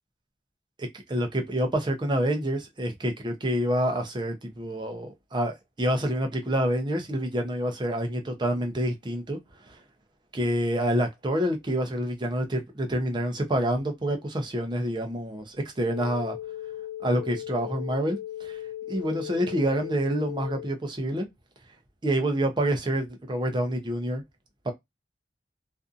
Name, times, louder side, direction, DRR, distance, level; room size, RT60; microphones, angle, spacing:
voice 1, 0.8-9.4 9.7-9.8 10.3-16.4 17.0-18.6 18.9-21.3 22.0-24.2 24.6-24.7, right 1 dB, 25° right, 0.5 m, -27 dB
sound 1, 15.8-20.7, left 12 dB, 80° right, 0.6 m, -37 dB
2.6 x 2.5 x 2.4 m
head